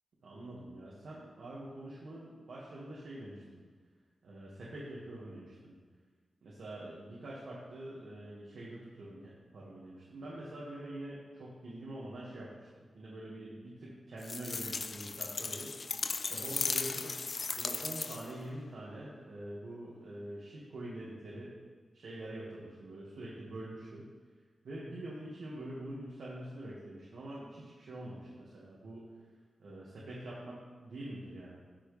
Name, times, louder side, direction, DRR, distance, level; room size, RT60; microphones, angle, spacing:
voice 1, 0.2-3.6 4.2-5.7 6.4-15.7 16.2-17.2 17.6-21.5 21.9-24.1 24.6-29.0 29.6-31.6, right 1 dB, 80° right, -7 dB, 1.9 m, -45 dB
sound 1, 14.2-18.4, left 4 dB, 40° left, 0.3 m, -36 dB
16.5 x 6.2 x 3.4 m, 1.5 s
wide cardioid pair, 165°, 0 cm